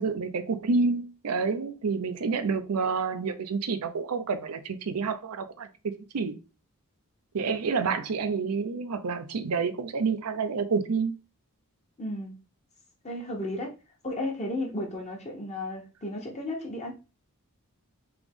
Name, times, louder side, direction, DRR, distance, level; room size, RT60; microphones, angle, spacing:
voice 1, 0.0-6.4 7.3-11.1, right 4 dB, 80° right, 0.6 m, -29 dB
voice 2, 12.0-12.3 13.0-13.7 14.0-16.9, left 1 dB, 30° left, 0.9 m, -34 dB
3.4 x 3.0 x 3.5 m
head